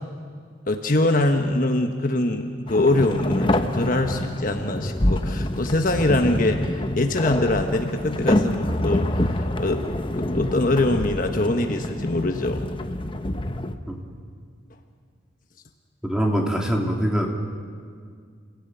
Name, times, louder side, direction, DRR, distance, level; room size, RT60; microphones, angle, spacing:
voice 1, 0.7-9.8 10.1-12.6, left 2 dB, 45° left, 5 dB, 1.3 m, -23 dB
sound 1, 2.7-13.7, left 1 dB, 25° left, 1.0 m, -26 dB
voice 2, 16.0-17.3, equal, 5° right, 0 dB, 2.9 m, -23 dB
29.0 x 16.5 x 9.1 m, 2.1 s
head